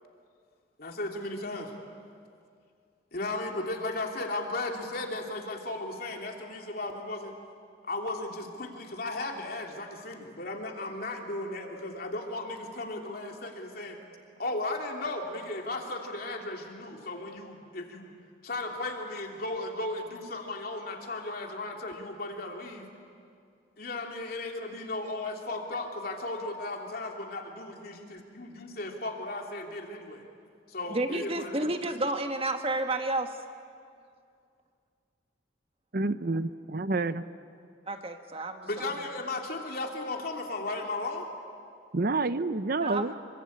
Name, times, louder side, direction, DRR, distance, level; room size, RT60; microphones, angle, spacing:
voice 1, 0.8-1.7 3.1-7.4 7.8-14.0 14.4-18.1 18.4-22.9 23.8-30.3 30.7-31.7 38.6-41.3 43.0-43.1, left 2 dB, 50° left, 2 dB, 3.1 m, -35 dB
voice 2, 30.9-33.4 37.9-38.9 42.8-43.1, right 2 dB, 30° right, 6 dB, 1.5 m, -31 dB
voice 3, 35.9-37.2 41.9-43.1, right 3 dB, 50° right, 13 dB, 0.8 m, -28 dB
27.0 x 24.0 x 8.8 m, 2.3 s
head